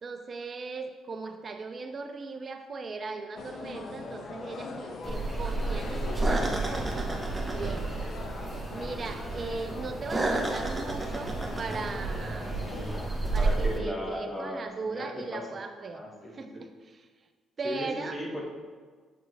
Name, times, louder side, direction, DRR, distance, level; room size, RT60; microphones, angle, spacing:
voice 1, 0.0-7.1 7.5-8.2 8.7-12.6 13.3-16.0 16.3-17.1 17.6-18.2, right 4 dB, 45° right, 7 dB, 0.4 m, -38 dB
sound 1, 3.3-13.1, left 3 dB, 55° left, 0.7 m, -41 dB
sound 2, 5.0-13.8, right 2 dB, 15° right, 1.0 m, -31 dB
voice 2, 13.4-15.4 15.8-16.6 17.6-18.4, left 1 dB, 25° left, 0 dB, 1.3 m, -37 dB
7.8 x 4.4 x 3.3 m, 1.5 s
supercardioid pair, 75°, 0 cm